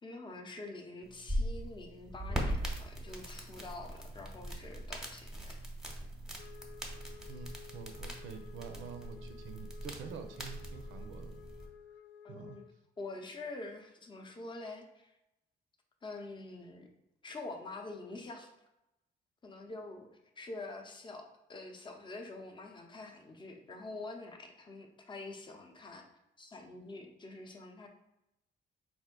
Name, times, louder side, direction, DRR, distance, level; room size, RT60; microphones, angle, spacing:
voice 1, 0.0-5.6 12.2-12.6 13.0-15.1 16.0-16.9 17.2-18.5 19.4-20.1 20.4-26.0 26.4-27.9, left 2 dB, 25° left, 3 dB, 0.6 m, -46 dB
sound 1, 1.0-11.7, equal, ahead, 0.9 m, -40 dB
Wind instrument woodwind instrument, 6.4-12.8, left 8 dB, 65° left, 0.4 m, -54 dB
voice 2, 7.3-11.4 12.3-12.6, right 6 dB, 80° right, 6 dB, 0.5 m, -47 dB
3.6 x 2.6 x 3.7 m, 0.90 s
cardioid pair, 90°, 20 cm